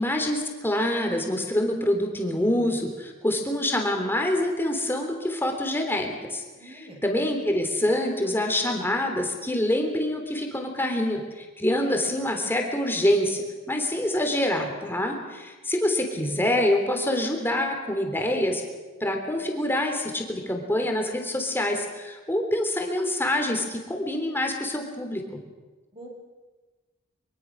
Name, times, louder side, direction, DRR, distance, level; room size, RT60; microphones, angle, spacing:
voice 1, 0.0-18.6 19.0-25.4, left 1 dB, 10° left, 3 dB, 3.4 m, -26 dB
voice 2, 6.5-7.0 25.9-26.1, right 1 dB, 30° right, -1 dB, 6.8 m, -45 dB
24.0 x 23.5 x 6.4 m, 1.2 s
head